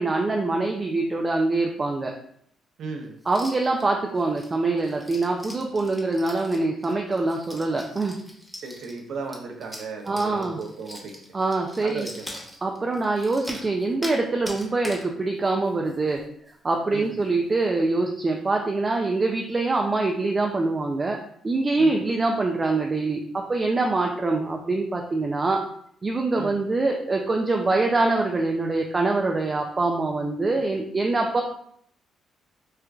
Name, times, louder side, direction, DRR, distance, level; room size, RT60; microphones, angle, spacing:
voice 1, 0.0-2.1 3.3-8.2 10.1-10.6 11.3-12.1 12.6-16.2 16.6-21.2 21.4-25.6 26.0-31.4, right 3 dB, 30° right, 1 dB, 0.4 m, -24 dB
voice 2, 2.8-3.2 8.6-11.4 11.8-12.4 16.9-17.1 21.8-22.0 26.4-26.6, right 4 dB, 70° right, 3 dB, 0.6 m, -36 dB
Pieces of Plastic, 3.2-3.8 4.2-14.2 14.5-15.1 15.5-15.6 15.9-16.2 16.5-16.6 17.1-17.2, equal, 5° left, 0.8 m, -41 dB
4.3 x 2.4 x 2.3 m, 0.67 s
cardioid pair, 90°, 0 cm